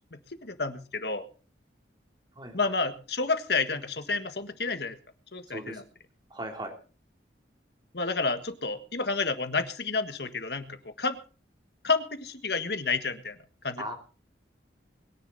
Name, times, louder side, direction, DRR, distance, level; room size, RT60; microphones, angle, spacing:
voice 1, 0.1-1.2 2.5-4.9 5.3-5.8 7.9-10.7 11.0-11.2 11.8-13.4 13.6-13.9, left 4 dB, 65° left, 9 dB, 1.7 m, -30 dB
voice 2, 2.3-2.7 5.5-5.8 6.3-6.7 13.8-13.9, right 1 dB, 25° right, 2 dB, 3.3 m, -37 dB
21.5 x 10.5 x 4.1 m, 0.37 s
head